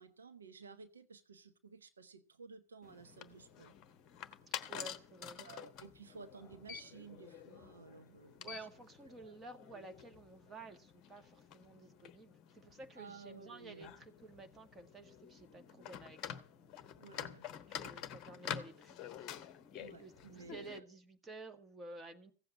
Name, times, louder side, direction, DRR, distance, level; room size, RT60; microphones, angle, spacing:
voice 1, 0.0-3.7 5.4-8.6 9.1-9.3 13.0-13.9 17.0-17.4 19.8-20.8, right 4 dB, 70° right, 8 dB, 1.1 m, -54 dB
sound 1, 2.8-20.8, left 9 dB, 35° left, 1.1 m, -49 dB
voice 2, 4.5-5.4 8.4-16.4 17.7-19.1 20.0-22.3, right 3 dB, 15° right, 7 dB, 1.9 m, -52 dB
16.0 x 7.8 x 7.6 m, 0.38 s
figure-of-eight pair, 90°, 0 cm